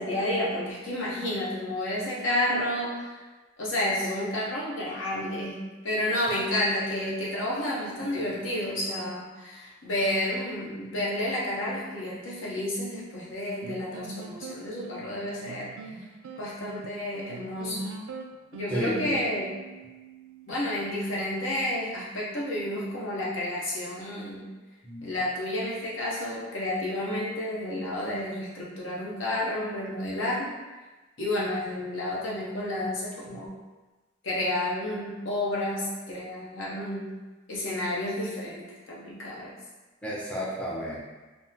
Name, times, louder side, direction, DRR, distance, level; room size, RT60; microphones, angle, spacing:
voice 1, 0.0-3.2 3.6-15.7 16.4-17.9 18.5-19.5 20.5-24.5 25.0-30.5 31.2-33.5 34.2-37.1 37.5-39.5, left 1 dB, 70° left, -6 dB, 0.8 m, -30 dB
sound 1, 13.6-20.6, right 2 dB, 85° right, 0.3 m, -42 dB
voice 2, 18.7-19.2 24.8-25.2 40.0-41.0, equal, 5° left, -8 dB, 0.6 m, -31 dB
3.5 x 2.0 x 2.7 m, 1.2 s
head